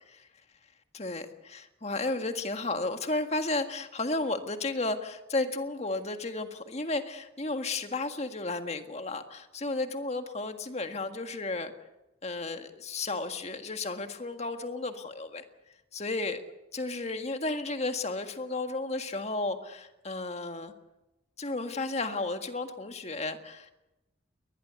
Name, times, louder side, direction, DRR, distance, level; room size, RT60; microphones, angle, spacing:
voice 1, 0.9-11.7 12.2-15.4 15.9-16.4 16.7-20.7 21.4-23.7, left 2 dB, 35° left, 7 dB, 1.7 m, -33 dB
22.0 x 20.5 x 8.2 m, 0.98 s
head